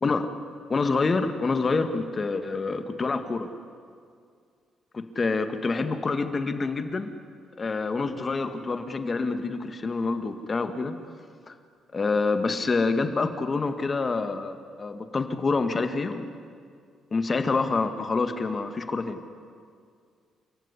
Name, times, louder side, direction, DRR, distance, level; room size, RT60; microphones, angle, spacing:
voice 1, 0.7-3.5 4.9-7.1 7.6-11.0 11.5-11.6 11.9-16.3 17.1-19.2, left 3 dB, 35° left, 8 dB, 2.0 m, -27 dB
28.5 x 15.5 x 9.9 m, 2.2 s
cardioid pair, 90°, 0 cm